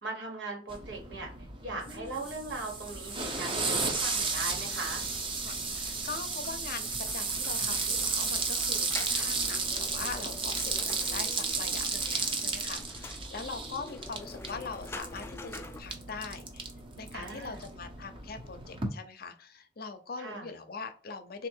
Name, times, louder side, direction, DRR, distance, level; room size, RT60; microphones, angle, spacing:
voice 1, 0.0-1.3 1.6-5.0 17.1-17.6 20.2-20.5, right 2 dB, 80° right, 1 dB, 1.4 m, -39 dB
sound 1, 0.7-18.9, right 4 dB, 30° right, 0.7 m, -34 dB
voice 2, 1.9-2.2 5.4-10.6 10.8-16.7 17.0-21.5, left 4 dB, 55° left, 8 dB, 0.6 m, -42 dB
sound 2, 2.9-15.8, left 2 dB, 15° left, 0.3 m, -48 dB
3.7 x 2.5 x 4.4 m, 0.39 s
head